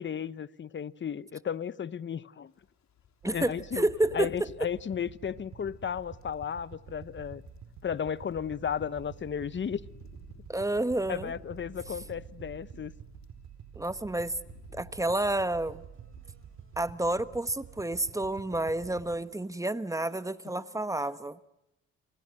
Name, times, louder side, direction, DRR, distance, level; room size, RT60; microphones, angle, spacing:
voice 1, 0.0-2.5 3.3-3.9 4.1-7.4 7.8-9.8 11.1-12.9, left 8 dB, 40° left, 1.0 m, -34 dB
sound 1, 2.5-13.5 13.8-17.2 17.5-17.8 18.1-18.9 19.1-19.4, left 7 dB, 65° left, 3.6 m, -57 dB
voice 2, 3.2-4.3 10.5-11.3 13.7-14.3 14.7-15.8 16.8-21.4, right 1 dB, 10° right, 1.2 m, -30 dB
sound 2, 3.2-19.2, right 8 dB, 65° right, 3.9 m, -49 dB
sound 3, 15.2-21.1, right 4 dB, 40° right, 6.0 m, -67 dB
29.5 x 25.5 x 7.7 m
cardioid pair, 90°, 30 cm